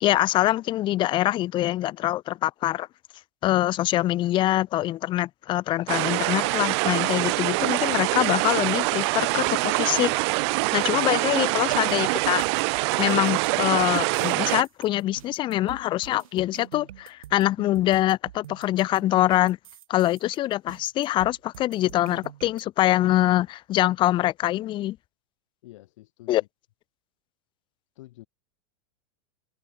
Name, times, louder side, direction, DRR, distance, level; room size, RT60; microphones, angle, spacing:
voice 1, 0.0-2.9 3.4-10.3 10.7-12.4 13.0-19.6 19.9-25.0 26.3-26.4, left 14 dB, 30° left, 0.4 m, -24 dB
sound 1, 5.9-14.6, right 29 dB, 55° right, 0.5 m, -24 dB
sound 2, 11.7-22.6, right 13 dB, 85° right, 0.8 m, -46 dB
voice 2, 25.6-26.5 28.0-28.3, left 17 dB, 70° left, 2.1 m, -48 dB
hypercardioid pair, 125°, 17 cm